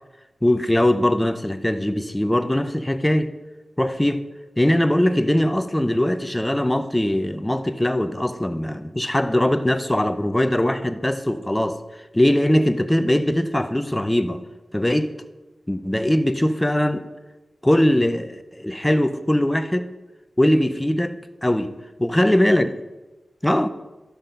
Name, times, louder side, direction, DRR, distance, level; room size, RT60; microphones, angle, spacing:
voice 1, 0.4-3.3 3.8-4.3 4.6-11.8 12.1-14.4 14.7-15.1 15.7-17.0 17.6-19.9 20.4-21.7 22.0-22.7 23.4-23.7, left 1 dB, 10° left, 0.6 m, -21 dB
12.5 x 5.8 x 5.2 m
wide cardioid pair, 105°, 0 cm